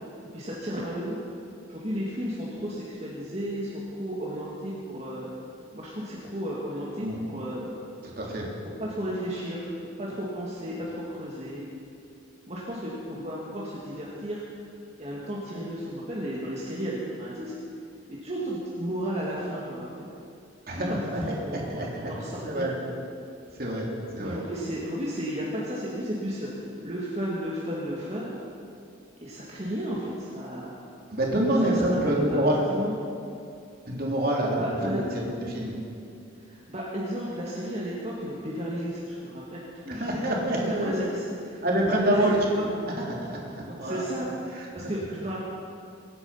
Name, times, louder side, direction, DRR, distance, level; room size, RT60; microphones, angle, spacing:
voice 1, 0.3-1.2 1.7-5.3 5.7-7.7 8.8-9.7 10.0-11.7 12.5-14.4 15.0-17.5 18.1-20.1 20.7-21.0 21.4-22.7 24.2-28.4 29.2-30.7 31.7-32.0 32.7-33.0 34.6-35.0 36.4-40.2 40.7-41.6 42.1-42.7 43.8-45.4, equal, 35° right, -6 dB, 2.2 m, -33 dB
voice 2, 8.0-8.5 20.7-22.1 22.4-22.7 23.5-23.9 24.1-24.4 31.1-32.6 33.9-35.7 39.9-41.1 41.6-42.5 42.8-44.1, right 1 dB, 50° right, -3 dB, 3.3 m, -27 dB
24.5 x 10.0 x 5.7 m, 2.6 s
head